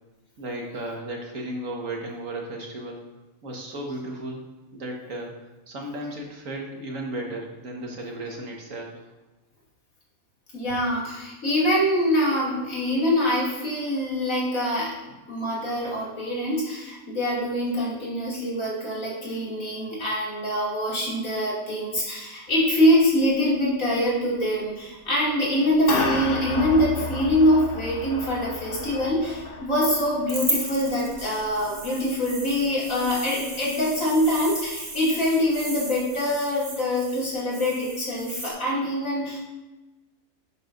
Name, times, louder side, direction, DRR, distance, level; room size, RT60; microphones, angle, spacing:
voice 1, 0.4-3.0 3.4-4.4 4.7-9.0 15.1-15.2, right 1 dB, 65° right, 0 dB, 1.9 m, -35 dB
voice 2, 10.5-14.9 15.3-39.4, equal, 65° left, -6 dB, 3.0 m, -24 dB
sound 1, 22.5-22.6 22.9-23.1 24.4-24.5 25.5-34.6, left 2 dB, 40° left, 1.3 m, -33 dB
sound 2, 30.3-38.5, right 2 dB, 45° right, 2.2 m, -35 dB
11.5 x 8.1 x 2.6 m, 1.1 s
omnidirectional pair, 1.5 m